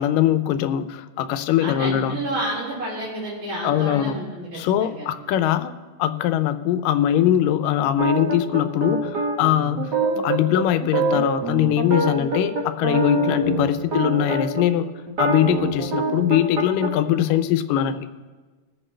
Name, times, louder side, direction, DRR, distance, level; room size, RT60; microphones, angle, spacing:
voice 1, 0.0-2.2 3.6-4.2 4.5-14.9 15.2-18.1, left 11 dB, 85° left, 11 dB, 2.3 m, -22 dB
voice 2, 1.6-5.1, right 1 dB, 80° right, -8 dB, 5.0 m, -30 dB
sound 1, 8.0-14.6 15.1-16.9, right 2 dB, 60° right, 1.1 m, -24 dB
24.0 x 8.8 x 3.3 m, 1.3 s
omnidirectional pair, 3.9 m